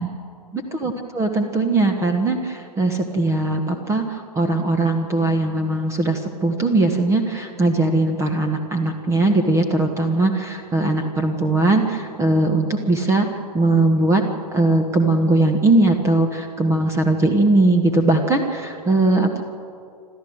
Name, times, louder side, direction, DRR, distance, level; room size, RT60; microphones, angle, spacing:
voice 1, 0.7-13.3 13.5-14.2 14.5-19.4, right 2 dB, 15° right, 6 dB, 1.4 m, -19 dB
28.0 x 13.0 x 8.0 m, 2.4 s
figure-of-eight pair, 110°, 21 cm